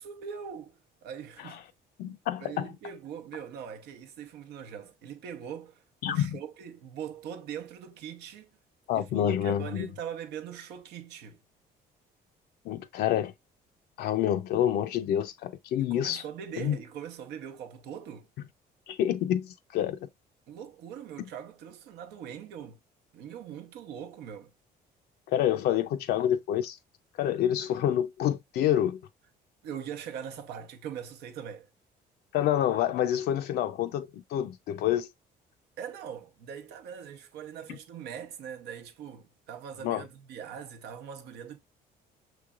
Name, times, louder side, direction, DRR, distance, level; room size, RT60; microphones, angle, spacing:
voice 1, 0.0-1.7 2.4-8.5 8.9-11.4 15.8-18.3 20.5-22.8 23.1-24.5 29.6-31.7 35.8-41.6, right 8 dB, 85° right, 0.8 m, -41 dB
voice 2, 2.0-2.7 6.0-6.4 8.9-9.9 12.7-13.3 14.0-16.2 16.6-16.8 18.9-20.0 25.3-26.8 27.2-29.0 32.3-35.1 39.8-40.0, left 11 dB, 70° left, 0.4 m, -27 dB
5.8 x 3.2 x 2.3 m
cardioid pair, 110°, 17 cm